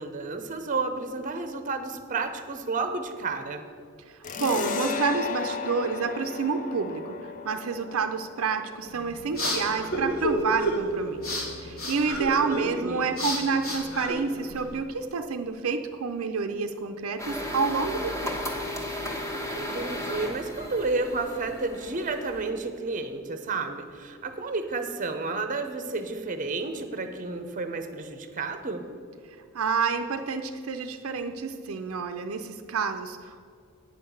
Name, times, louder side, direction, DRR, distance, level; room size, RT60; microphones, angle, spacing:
voice 1, 0.0-3.7 12.5-13.1 19.5-28.8, right 3 dB, 40° right, 8 dB, 0.7 m, -31 dB
sound 1, 4.2-11.4, left 5 dB, 40° left, 0.5 m, -36 dB
voice 2, 4.4-7.1 7.4-18.7 29.5-33.4, right 5 dB, 80° right, 6 dB, 0.5 m, -29 dB
sound 2, 8.9-14.8, equal, 80° left, 2.1 m, -31 dB
sound 3, 17.2-22.5, left 1 dB, 15° left, 1.1 m, -34 dB
8.8 x 5.7 x 7.0 m, 2.3 s
head